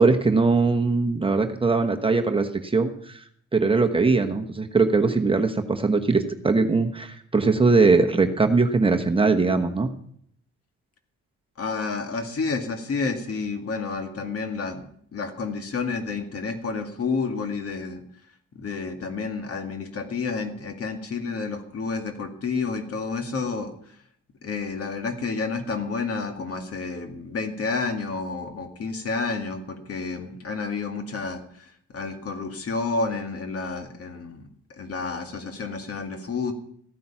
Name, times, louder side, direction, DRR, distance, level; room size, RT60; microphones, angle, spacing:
voice 1, 0.0-3.2 3.5-9.9, right 3 dB, 15° right, 4 dB, 1.1 m, -21 dB
voice 2, 11.6-18.0 18.6-24.0 24.4-36.5, left 4 dB, 50° left, 5 dB, 2.2 m, -30 dB
15.0 x 9.3 x 5.8 m, 0.65 s
cardioid pair, 90°, 30 cm